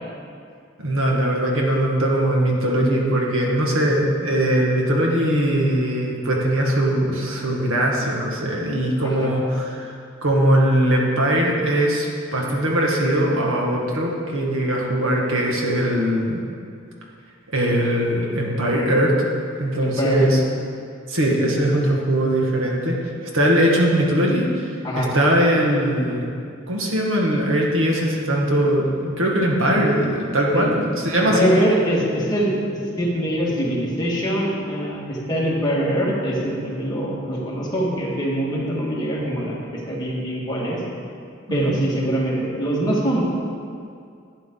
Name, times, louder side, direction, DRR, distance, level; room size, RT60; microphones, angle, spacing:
voice 1, 0.8-16.4 17.5-19.1 19.6-20.4 21.1-23.0 23.3-26.3 26.7-31.5 41.5-41.8, right 1 dB, 90° right, -1 dB, 1.7 m, -20 dB
voice 2, 19.8-20.3 24.8-25.1 30.5-30.7 31.1-32.5 33.0-40.8 41.5-43.2, equal, 20° left, -5 dB, 1.9 m, -23 dB
11.5 x 9.1 x 3.9 m, 2.4 s
head